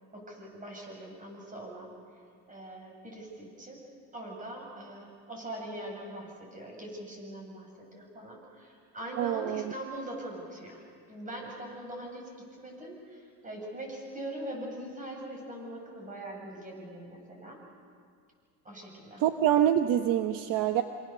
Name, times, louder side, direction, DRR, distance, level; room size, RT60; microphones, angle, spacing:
voice 1, 0.1-1.9 2.5-3.8 4.1-10.8 11.1-12.3 12.6-17.6 18.6-19.2, right 1 dB, 20° right, 0 dB, 7.9 m, -42 dB
voice 2, 9.2-9.6 19.2-20.8, right 11 dB, 55° right, 8 dB, 1.1 m, -25 dB
27.0 x 26.5 x 7.0 m, 2.2 s
cardioid pair, 125°, 38 cm